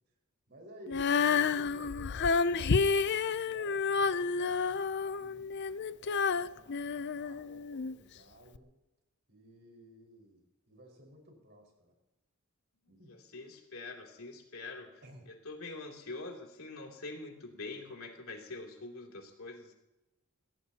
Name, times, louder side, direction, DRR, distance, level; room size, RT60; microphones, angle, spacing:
voice 1, 0.5-5.5 6.0-8.7 9.3-11.9 12.9-13.2 15.0-15.3, right 1 dB, 50° right, 1 dB, 5.1 m, -55 dB
Female singing, 0.9-7.9 8.5-8.6, left 5 dB, 50° left, 0.5 m, -30 dB
voice 2, 13.1-19.7, left 3 dB, 70° left, 1 dB, 3.0 m, -45 dB
23.5 x 17.0 x 2.9 m, 0.95 s
head